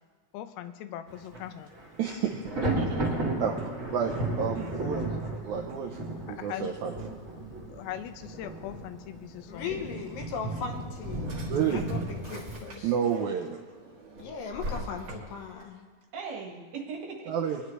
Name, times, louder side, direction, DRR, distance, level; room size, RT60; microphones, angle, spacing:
voice 1, 0.3-1.7 6.3-6.7 7.7-9.7 11.6-11.8, left 12 dB, 85° left, 10 dB, 2.6 m, -40 dB
Thunder, 1.1-1.4 1.7-12.5, right 2 dB, 25° right, 2.4 m, -34 dB
voice 2, 2.0-2.4 3.4-3.5 3.9-4.1 4.4-6.0 6.3-6.9 11.5-11.8 12.8-13.6 17.3-17.6, right 8 dB, 80° right, 1 dB, 1.7 m, -29 dB
voice 3, 2.8-3.3 4.6-4.7 5.9-6.0 11.2-11.4 13.0-13.3 16.1-17.4, right 4 dB, 65° right, 0 dB, 2.7 m, -41 dB
voice 4, 9.5-11.4 11.7-12.9 14.2-15.8, left 6 dB, 70° left, 4 dB, 2.5 m, -38 dB
Drawer open or close, 10.8-13.1 13.6-15.6, equal, 40° right, 2.1 m, -42 dB
24.0 x 10.0 x 3.2 m, 1.5 s
omnidirectional pair, 4.3 m